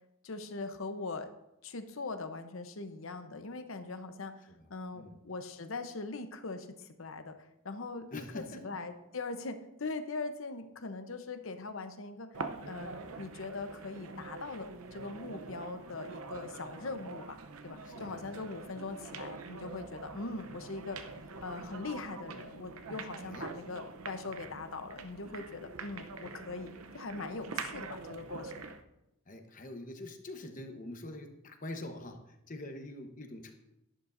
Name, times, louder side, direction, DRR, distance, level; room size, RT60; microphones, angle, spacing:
voice 1, 0.2-1.3 1.6-4.4 4.7-7.4 7.6-12.3 12.6-17.4 17.6-21.0 21.4-28.5, left 3 dB, 70° left, 8 dB, 0.8 m, -41 dB
voice 2, 8.1-8.8 17.8-18.3 23.2-23.5 29.3-33.5, left 1 dB, 40° left, 5 dB, 1.1 m, -45 dB
sound 1, 12.3-28.8, right 4 dB, 90° right, 0.7 m, -45 dB
11.5 x 10.5 x 2.6 m, 0.88 s
head